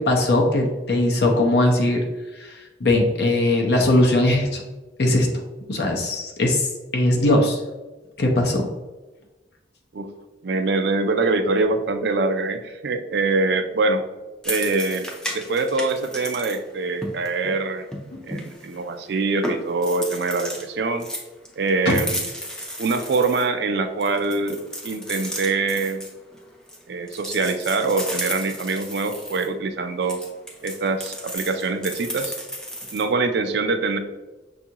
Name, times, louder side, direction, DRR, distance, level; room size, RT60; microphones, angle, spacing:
voice 1, 0.0-2.0 2.4-4.6 5.0-5.3 5.7-6.7 6.9-7.6 8.2-8.6 21.9-22.0, left 1 dB, 60° left, 1 dB, 0.6 m, -20 dB
voice 2, 10.4-14.0 14.4-15.1 15.3-17.9 18.3-21.1 21.6-22.3 22.8-26.0 26.9-30.2 30.6-32.4 32.9-34.0, right 3 dB, 60° right, 8 dB, 0.4 m, -24 dB
sound 1, 14.4-16.6 16.9-18.9 19.1-19.2 19.4-20.7 21.0-23.5 24.0-26.8 27.1-29.5 30.0-33.1, equal, 5° left, 0.4 m, -33 dB
6.2 x 2.4 x 2.8 m, 1.2 s
head